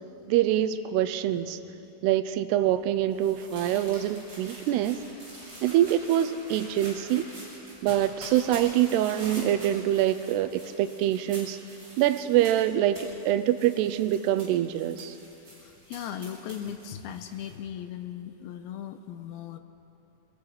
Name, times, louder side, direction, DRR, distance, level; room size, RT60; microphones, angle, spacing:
voice 1, 0.3-1.6 2.0-5.0 5.6-7.3 7.8-11.6 12.0-15.2, right 12 dB, 85° right, 11 dB, 2.7 m, -25 dB
sound 1, 2.5-17.5, right 1 dB, 25° right, 7.7 m, -46 dB
voice 2, 15.6-19.6, left 9 dB, 80° left, 8 dB, 2.5 m, -38 dB
24.0 x 21.5 x 6.1 m, 2.8 s
omnidirectional pair, 4.7 m